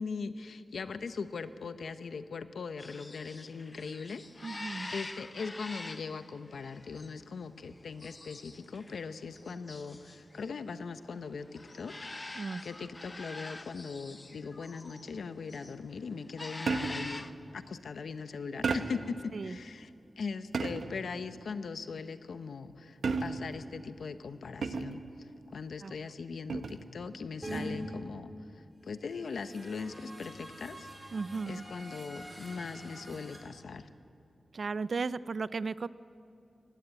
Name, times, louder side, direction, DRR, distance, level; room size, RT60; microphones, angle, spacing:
voice 1, 0.0-17.3 17.5-19.9 20.2-30.9 31.5-33.9, left 5 dB, 80° left, 11 dB, 0.8 m, -40 dB
sound 1, 2.8-15.1 15.4-15.8 16.2-17.3, left 2 dB, 25° left, 0.7 m, -46 dB
voice 2, 4.4-4.9 12.3-12.6 19.3-19.6 25.8-25.9 31.1-31.6 34.5-35.9, right 4 dB, 50° right, 17 dB, 0.4 m, -35 dB
sound 2, 16.7-17.2 18.6-19.1 20.5-21.0 23.0-23.6 24.6-25.1 26.5-26.9, right 4 dB, 75° right, 1.0 m, -33 dB
sound 3, 27.4-27.6 29.0-33.4, right 1 dB, 15° right, 4.6 m, -46 dB
19.0 x 15.0 x 8.9 m, 2.6 s
wide cardioid pair, 145°, 0 cm